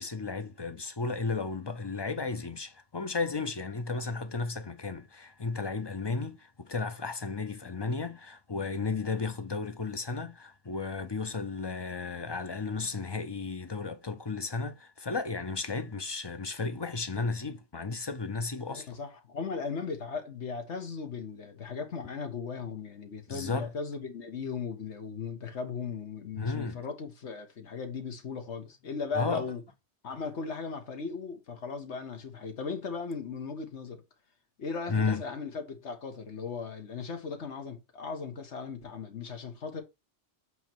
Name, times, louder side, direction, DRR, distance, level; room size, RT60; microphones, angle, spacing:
voice 1, 0.0-18.9 23.3-23.7 26.4-26.8 29.1-29.4 34.9-35.2, left 4 dB, 30° left, 0.5 m, -34 dB
voice 2, 18.7-29.6 30.0-34.0 34.6-39.8, left 5 dB, 80° left, 1.5 m, -37 dB
7.9 x 3.1 x 4.5 m
omnidirectional pair, 1.2 m